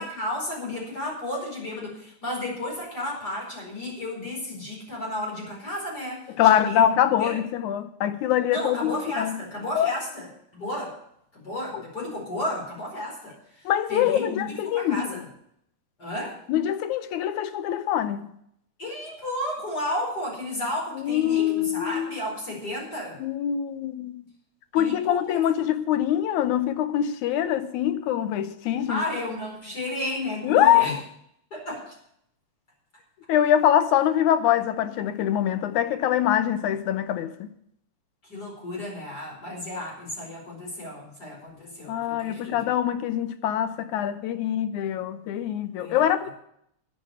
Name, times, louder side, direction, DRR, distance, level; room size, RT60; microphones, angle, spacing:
voice 1, 0.0-6.9 7.2-7.4 8.5-10.3 10.5-11.0 11.3-15.3 16.0-16.4 18.8-23.2 24.7-25.6 28.9-31.0 31.5-32.0 38.2-42.7 45.8-46.1, left 1 dB, 30° left, 5.1 m, -33 dB
voice 2, 6.4-9.4 9.8-9.9 11.7-11.8 13.7-15.0 16.5-18.3 21.0-22.1 23.2-24.2 24.7-29.0 30.4-30.9 33.3-37.5 41.9-46.3, left 10 dB, 85° left, 2.3 m, -24 dB
10.5 x 9.6 x 7.0 m
omnidirectional pair, 3.4 m